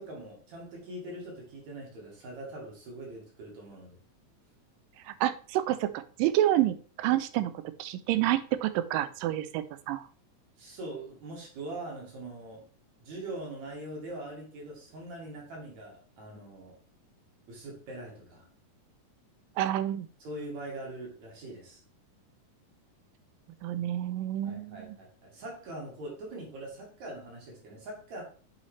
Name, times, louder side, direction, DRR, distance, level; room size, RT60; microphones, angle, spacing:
voice 1, 0.0-4.0 10.6-12.6 13.0-16.8 17.5-18.5 20.2-21.8 24.4-28.2, right 1 dB, 60° right, -2 dB, 3.7 m, -42 dB
voice 2, 5.1-7.5 7.8-10.0 19.6-20.1 23.6-24.8, right 13 dB, 90° right, 13 dB, 2.3 m, -28 dB
7.9 x 5.6 x 3.2 m, 0.41 s
omnidirectional pair, 3.8 m